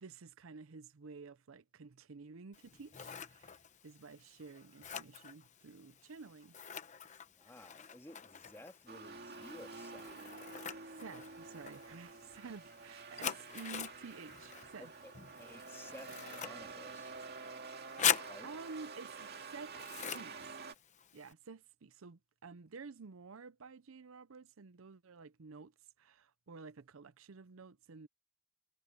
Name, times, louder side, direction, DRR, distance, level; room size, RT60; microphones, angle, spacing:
voice 1, 0.0-6.6 10.8-14.9 16.1-16.2 18.0-20.6 21.1-28.1, right 4 dB, 70° right, 0.6 m, -52 dB
Scissors, 2.5-21.3, left 8 dB, 35° left, 0.9 m, -43 dB
voice 2, 7.4-10.1 15.0-15.1 15.4-16.1 16.4-17.1 18.3-18.5, left 1 dB, 10° left, 1.9 m, -54 dB
sound 1, 8.9-20.7, right 4 dB, 50° right, 2.2 m, -49 dB
head